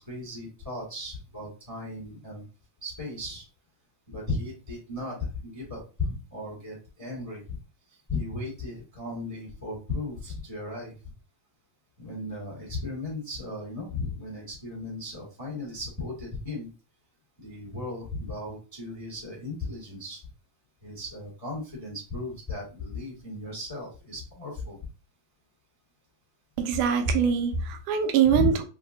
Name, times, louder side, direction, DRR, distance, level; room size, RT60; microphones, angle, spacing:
voice 1, 0.0-2.4 2.8-3.4 4.1-7.6 8.1-11.0 12.0-16.7 17.4-20.2 20.8-24.8 28.2-28.6, left 3 dB, 10° left, 1.0 m, -35 dB
voice 2, 26.6-28.7, right 7 dB, 90° right, 2.2 m, -23 dB
5.1 x 2.4 x 2.5 m
omnidirectional pair, 3.6 m